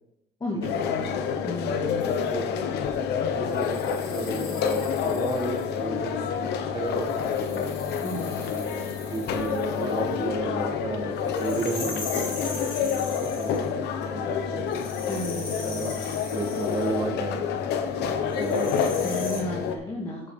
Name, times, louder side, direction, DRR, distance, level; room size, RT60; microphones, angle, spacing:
voice 1, 0.4-2.1 8.0-8.5 15.1-15.5 19.0-20.3, left 1 dB, 25° left, -3 dB, 2.4 m, -34 dB
sound 1, 0.6-19.7, left 7 dB, 80° left, 1.1 m, -28 dB
sound 2, 2.0-2.3 3.5-5.8 6.9-10.1 11.3-13.7 14.7-17.0 18.3-19.4, left 3 dB, 55° left, 3.5 m, -40 dB
voice 2, 3.3-7.8 8.5-13.7 14.0-14.8 15.6-15.9 16.3-17.7 18.0-19.1, right 3 dB, 25° right, 4 dB, 1.7 m, -34 dB
10.0 x 6.9 x 4.8 m, 0.81 s
cardioid pair, 110°, 17 cm